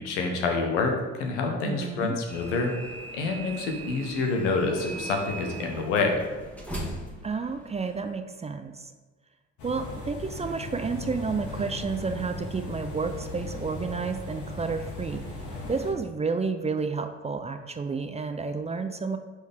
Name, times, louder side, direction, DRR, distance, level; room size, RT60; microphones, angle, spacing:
voice 1, 0.0-2.7 3.1-6.2, left 3 dB, 70° left, 3 dB, 1.3 m, -27 dB
voice 2, 1.6-2.2 7.2-8.9 9.6-15.2 15.7-19.2, right 4 dB, 20° right, 7 dB, 0.5 m, -31 dB
sound 1, 2.3-8.1, right 2 dB, 5° left, 1.7 m, -40 dB
sound 2, 9.6-15.9, left 2 dB, 55° left, 2.1 m, -37 dB
9.9 x 4.5 x 3.6 m, 1.3 s
figure-of-eight pair, 55°, 36 cm